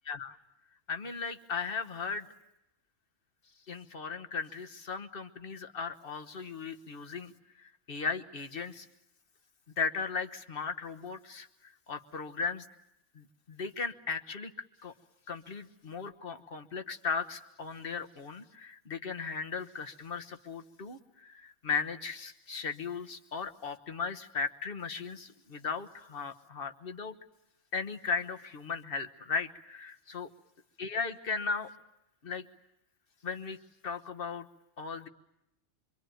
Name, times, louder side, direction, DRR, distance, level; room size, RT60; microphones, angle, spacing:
voice 1, 0.1-0.4 0.9-2.3 3.7-8.9 9.8-12.7 13.1-14.5 14.8-14.9 15.3-27.2 27.7-30.3 30.8-31.7 32.2-32.4 33.2-33.6 33.8-34.5 34.8-35.1, left 5 dB, 45° left, 8 dB, 1.5 m, -37 dB
26.0 x 25.0 x 9.2 m, 0.85 s
omnidirectional pair, 1.3 m